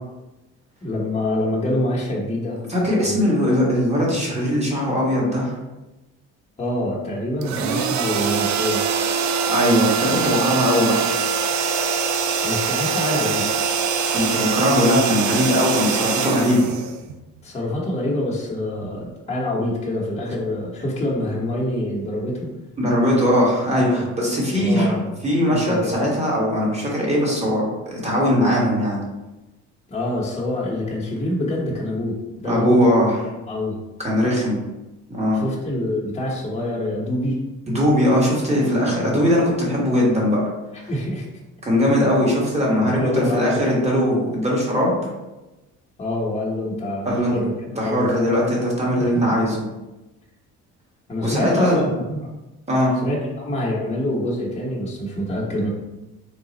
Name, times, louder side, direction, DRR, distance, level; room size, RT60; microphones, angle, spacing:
voice 1, 0.8-3.2 6.6-8.8 12.4-13.5 17.4-22.5 23.7-24.0 24.5-25.1 25.5-26.0 29.9-32.8 33.5-33.8 35.3-37.5 38.9-39.2 40.9-41.3 42.0-42.1 42.8-43.6 46.0-48.1 49.0-49.4 51.1-52.2 53.0-55.7, left 1 dB, 20° left, -5 dB, 1.0 m, -26 dB
voice 2, 2.7-5.5 9.5-11.1 14.1-16.7 22.8-24.9 25.2-29.0 32.4-33.3 34.0-34.6 35.1-35.4 37.7-40.4 41.6-44.9 47.0-47.3 47.8-49.6 51.2-51.9 52.7-52.9, equal, 20° right, -4 dB, 1.4 m, -20 dB
sound 1, 7.4-17.4, right 6 dB, 65° right, 0.5 m, -23 dB
3.9 x 2.4 x 4.0 m, 1.0 s
cardioid pair, 100°, 31 cm